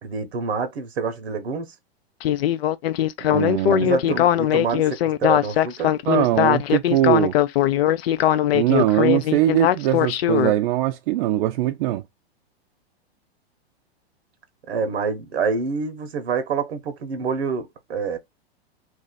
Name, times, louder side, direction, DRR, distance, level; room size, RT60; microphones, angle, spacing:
voice 1, 0.0-1.7 3.7-5.9 14.7-18.2, right 5 dB, 80° right, 1.0 m, -27 dB
Speech synthesizer, 2.2-10.5, left 11 dB, 70° left, 0.5 m, -20 dB
voice 2, 3.2-4.2 4.7-4.8 6.1-7.3 8.5-12.0, right 14 dB, 55° right, 0.5 m, -21 dB
2.7 x 2.5 x 3.9 m
hypercardioid pair, 115°, 31 cm